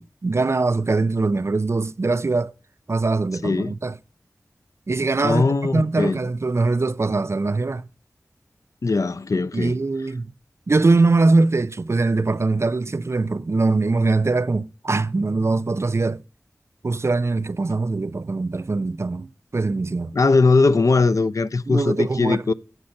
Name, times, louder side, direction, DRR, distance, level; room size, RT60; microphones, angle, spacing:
voice 1, 0.0-2.5 2.9-4.0 4.9-7.8 9.5-10.3 10.7-16.2 16.8-19.3 19.5-20.1 21.7-22.5, right 3 dB, 50° right, 0.4 m, -22 dB
voice 2, 5.2-6.2 8.8-9.8 20.1-22.5, left 3 dB, 65° left, 0.4 m, -20 dB
7.9 x 5.7 x 6.4 m
wide cardioid pair, 65°, 6 cm